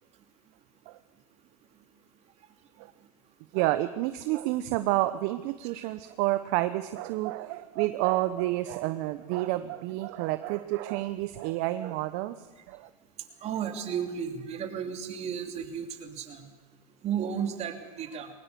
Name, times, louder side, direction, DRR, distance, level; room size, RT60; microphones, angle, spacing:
voice 1, 3.5-12.4 12.7-12.9, right 16 dB, 50° right, 11 dB, 1.0 m, -29 dB
voice 2, 13.4-16.5 17.0-18.3, right 8 dB, 35° right, 5 dB, 3.0 m, -33 dB
21.5 x 19.0 x 7.0 m, 1.3 s
hypercardioid pair, 115°, 20 cm